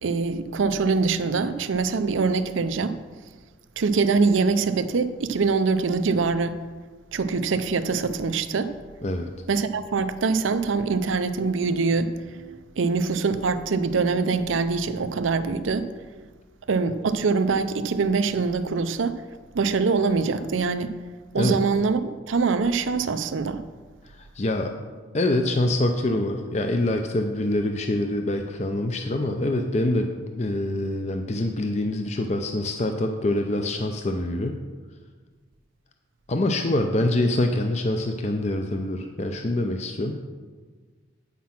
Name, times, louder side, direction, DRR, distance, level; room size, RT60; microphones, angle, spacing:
voice 1, 0.0-3.0 3.8-6.6 7.1-8.7 9.5-12.5 12.8-15.9 16.7-19.2 19.5-20.9 21.3-23.6, right 4 dB, 85° right, 11 dB, 0.5 m, -24 dB
voice 2, 24.2-24.7 25.1-34.6 36.3-40.2, left 1 dB, 35° left, 4 dB, 0.5 m, -25 dB
8.5 x 5.9 x 5.9 m, 1.4 s
head